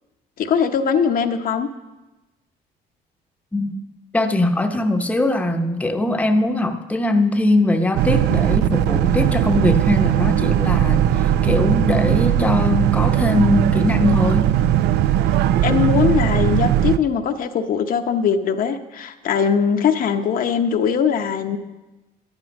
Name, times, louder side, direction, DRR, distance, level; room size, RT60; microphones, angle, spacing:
voice 1, 0.4-1.7 15.6-21.6, left 7 dB, 55° left, 6 dB, 0.9 m, -20 dB
voice 2, 4.1-14.5 15.7-15.8, left 2 dB, 10° left, 5 dB, 0.8 m, -21 dB
Boat Water vehicle, 8.0-17.0, right 11 dB, 80° right, 0.5 m, -18 dB
11.0 x 10.5 x 5.3 m, 1.1 s
cardioid pair, 110°, 17 cm